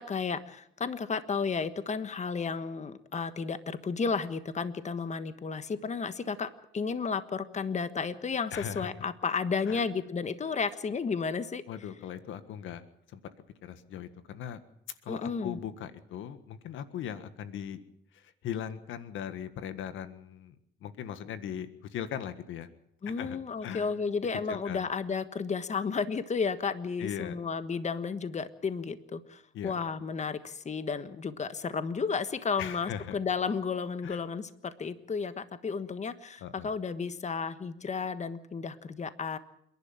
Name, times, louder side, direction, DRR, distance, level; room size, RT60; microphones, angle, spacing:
voice 1, 0.0-11.6 15.1-15.6 23.0-39.4, left 5 dB, 35° left, 12 dB, 1.4 m, -33 dB
voice 2, 8.5-8.9 9.7-9.8 11.7-12.8 13.1-13.2 13.6-14.6 15.0-17.8 18.1-22.7 23.0-23.9 24.5-24.9 27.0-27.4 29.5-29.7 32.6-33.2 34.0-34.2 36.4-36.7, left 9 dB, 85° left, 12 dB, 1.6 m, -39 dB
28.0 x 11.5 x 8.8 m, 0.74 s
cardioid pair, 90°, 20 cm